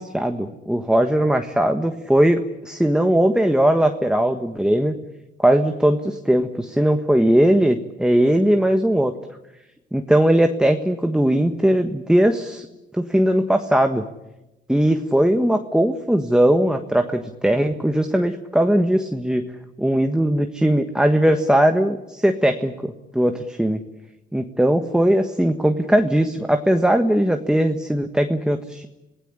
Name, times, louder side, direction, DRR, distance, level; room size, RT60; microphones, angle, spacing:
voice 1, 0.0-4.9 5.4-9.1 9.9-12.7 12.9-14.0 14.7-19.5 19.8-23.8 24.3-28.9, right 1 dB, 5° right, 6 dB, 1.5 m, -19 dB
26.5 x 17.5 x 9.9 m, 0.99 s
cardioid pair, 90°, 20 cm